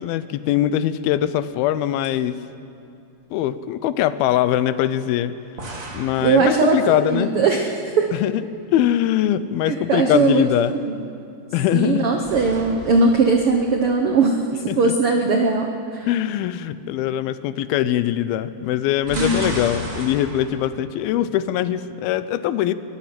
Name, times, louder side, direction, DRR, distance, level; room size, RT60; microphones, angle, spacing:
voice 1, 0.0-2.4 3.3-5.3 5.9-7.3 8.1-8.4 8.7-10.7 11.5-12.1 14.7-14.9 16.1-22.7, left 12 dB, 85° left, 14 dB, 2.6 m, -22 dB
sound 1, 1.1-1.8 2.0-2.2 5.6-7.2 11.8-14.3 18.8-20.8, right 1 dB, 25° right, 2.0 m, -35 dB
voice 2, 6.2-8.1 9.6-10.4 10.9-11.0 11.7-14.4 14.8-16.1 19.1-19.5, right 4 dB, 80° right, 3 dB, 1.2 m, -19 dB
22.0 x 20.5 x 6.0 m, 2.6 s
omnidirectional pair, 4.2 m